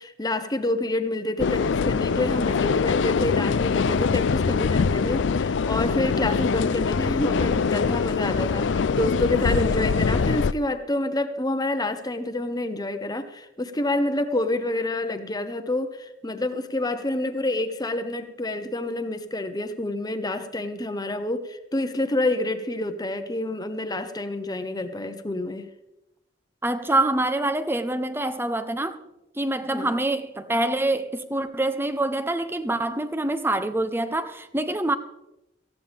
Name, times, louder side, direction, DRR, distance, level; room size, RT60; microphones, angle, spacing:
voice 1, 0.0-25.7 29.7-30.0, left 2 dB, 20° left, 1.0 m, -28 dB
sound 1, 1.4-10.5, left 5 dB, 70° left, 0.4 m, -23 dB
voice 2, 26.6-29.0 29.4-34.9, right 1 dB, 10° right, 0.8 m, -25 dB
18.5 x 14.5 x 3.5 m
head